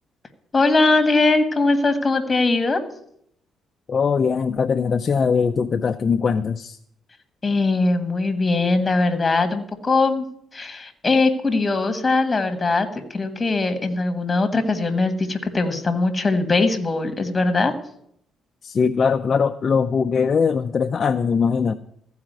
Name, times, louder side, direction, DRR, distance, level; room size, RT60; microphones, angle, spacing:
voice 1, 0.5-2.8 7.4-10.2 10.5-17.7, left 3 dB, 20° left, 8 dB, 1.6 m, -20 dB
voice 2, 3.9-6.8 18.6-21.7, left 6 dB, 40° left, 7 dB, 0.5 m, -21 dB
14.5 x 4.9 x 9.3 m, 0.71 s
cardioid pair, 105°, 0 cm